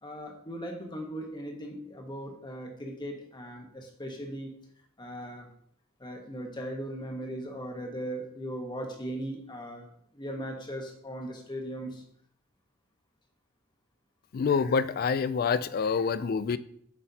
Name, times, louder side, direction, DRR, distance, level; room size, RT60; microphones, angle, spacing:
voice 1, 0.0-4.5 5.0-5.5 6.0-9.9 10.1-12.0, equal, 20° left, 3 dB, 1.1 m, -38 dB
voice 2, 14.3-16.6, left 5 dB, 45° left, 16 dB, 0.3 m, -27 dB
7.7 x 6.0 x 2.8 m, 0.66 s
head